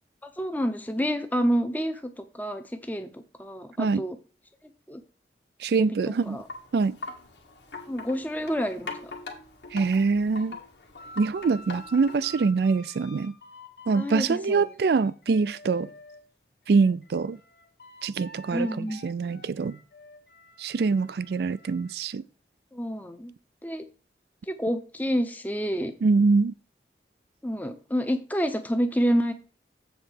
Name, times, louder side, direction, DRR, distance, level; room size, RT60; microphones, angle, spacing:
voice 1, 0.2-4.2 4.9-5.0 5.8-5.9 6.3-6.4 7.9-9.1 13.9-14.7 18.5-19.0 22.7-23.3 23.6-23.8 24.5-25.9 27.4-29.3, equal, 10° left, 0.7 m, -28 dB
voice 2, 5.6-6.4 6.7-7.0 9.7-10.6 11.2-13.3 13.9-15.9 16.7-17.4 18.0-19.8 20.6-22.2 26.0-26.5, right 4 dB, 65° right, 0.4 m, -24 dB
Wind chime, 6.2-12.4, left 3 dB, 85° left, 1.6 m, -42 dB
sound 1, 11.0-16.2 16.7-22.0, left 1 dB, 60° left, 1.0 m, -48 dB
7.8 x 4.0 x 6.4 m
head